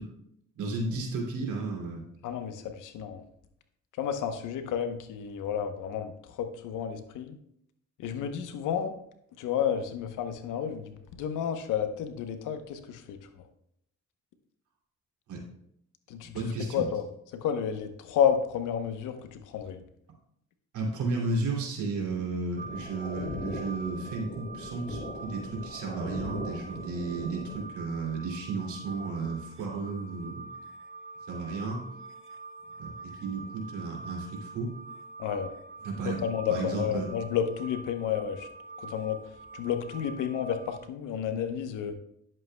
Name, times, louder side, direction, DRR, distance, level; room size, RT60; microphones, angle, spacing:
voice 1, 0.6-2.0 15.3-15.4 16.2-16.9 20.7-30.5 31.3-31.8 32.8-34.7 35.8-36.2 36.5-37.1, right 3 dB, 80° right, -1 dB, 2.7 m, -33 dB
voice 2, 2.2-3.2 4.0-7.4 8.0-8.9 9.4-13.2 16.1-16.3 16.7-17.0 17.4-19.8 35.2-35.5 36.0-38.5 38.8-39.2 39.5-42.0, left 8 dB, 85° left, 8 dB, 0.9 m, -31 dB
sound 1, 22.6-27.6, left 1 dB, 40° left, 3.6 m, -40 dB
sound 2, 22.6-40.8, right 3 dB, 40° right, 1.0 m, -45 dB
11.0 x 7.6 x 2.2 m, 0.73 s
cardioid pair, 90°, 30 cm